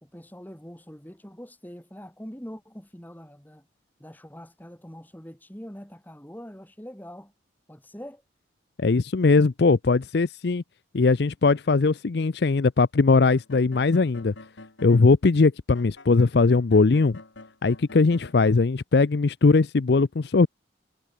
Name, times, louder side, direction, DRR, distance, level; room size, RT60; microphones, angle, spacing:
voice 1, 0.0-3.6 4.0-7.3 7.7-8.2, equal, 10° left, 2.3 m, -43 dB
voice 2, 8.8-10.6 10.9-14.3 14.8-17.2 17.6-20.5, left 3 dB, 60° left, 0.5 m, -20 dB
sound 1, 13.3-15.1 15.7-18.6, left 2 dB, 85° left, 2.4 m, -46 dB
head